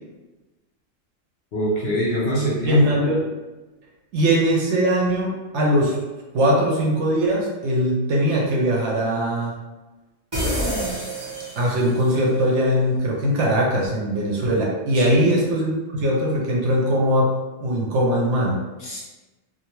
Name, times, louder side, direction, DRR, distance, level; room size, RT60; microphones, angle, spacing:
voice 1, 1.5-2.8 14.9-15.3 18.8-19.0, right 1 dB, 55° left, -5 dB, 0.7 m, -24 dB
voice 2, 2.7-3.2 4.1-6.0 6.3-9.5 11.6-17.3 17.6-18.6, equal, 70° right, -2 dB, 0.9 m, -20 dB
sound 1, 10.3-12.1, equal, 30° right, 0.5 m, -27 dB
2.6 x 2.0 x 2.9 m, 1.1 s
omnidirectional pair, 1.3 m